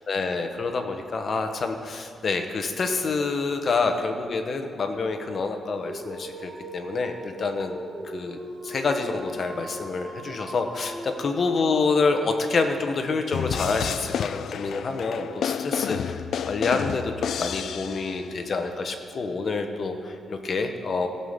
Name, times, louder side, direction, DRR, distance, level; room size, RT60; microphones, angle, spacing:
voice 1, 0.1-7.8 8.0-8.4 8.6-21.1, left 4 dB, 40° left, 5 dB, 1.0 m, -27 dB
Dog, 5.6-11.9, equal, 50° right, 2.3 m, -39 dB
sound 1, 13.3-18.4, left 8 dB, 65° left, 0.3 m, -30 dB
16.0 x 5.6 x 6.7 m, 2.4 s
wide cardioid pair, 160°, 0 cm